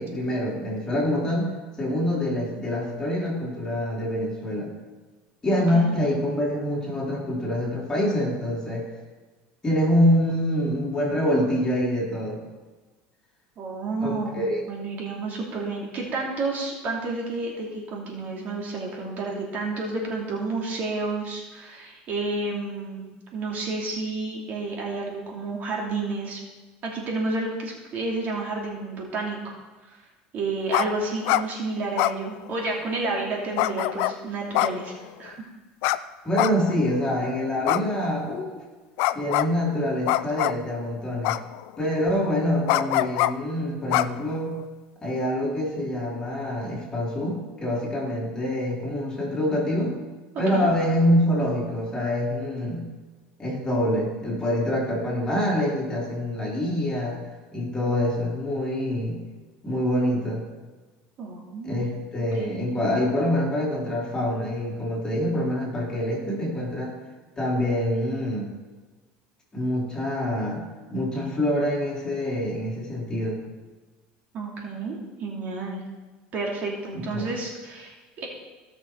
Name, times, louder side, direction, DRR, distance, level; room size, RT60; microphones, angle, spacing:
voice 1, 0.0-1.5 1.8-4.7 5.4-8.9 9.6-12.4 14.0-14.6 36.2-38.6 39.1-41.4 41.8-44.6 45.0-50.0 50.4-52.8 53.4-57.2 57.5-59.2 59.6-60.4 61.6-67.0 67.4-68.5 69.5-70.6 70.9-73.4 76.9-77.3, left 1 dB, 15° left, -4 dB, 3.7 m, -25 dB
voice 2, 13.6-14.4 14.7-23.0 23.3-26.4 26.8-29.6 29.9-30.0 30.3-34.9 35.2-35.5 50.5-50.7 61.2-61.9 62.4-62.7 74.3-75.8 76.3-78.3, right 3 dB, 45° right, -2 dB, 2.8 m, -30 dB
sound 1, 30.7-30.9 31.1-31.4 32.0-32.8 33.6-34.1 34.5-35.3 35.8-36.0 36.3-36.9 37.6-38.3 39.0-39.5 40.1-40.7 41.2-41.8 42.7-43.3 43.9-44.6, left 16 dB, 70° left, 0.4 m, -24 dB
17.0 x 6.3 x 4.6 m, 1.3 s
supercardioid pair, 120°, 4 cm